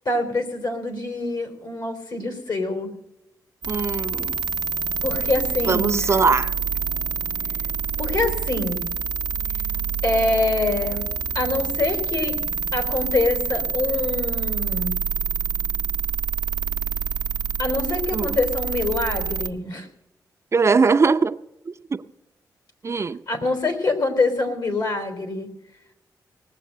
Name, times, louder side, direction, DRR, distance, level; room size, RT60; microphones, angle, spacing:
voice 1, 0.1-2.9 5.0-6.1 8.0-8.9 10.0-11.0 11.3-12.4 12.7-14.9 17.6-19.9 23.3-25.5, left 2 dB, 60° left, 3.7 m, -25 dB
sound 1, 3.6-19.5, right 6 dB, 80° right, 0.7 m, -27 dB
voice 2, 3.7-4.4 5.7-6.5 18.1-18.4 20.5-21.4 21.7-22.0 22.8-23.2, right 4 dB, 40° right, 0.5 m, -21 dB
19.5 x 7.7 x 6.6 m
cardioid pair, 90°, 7 cm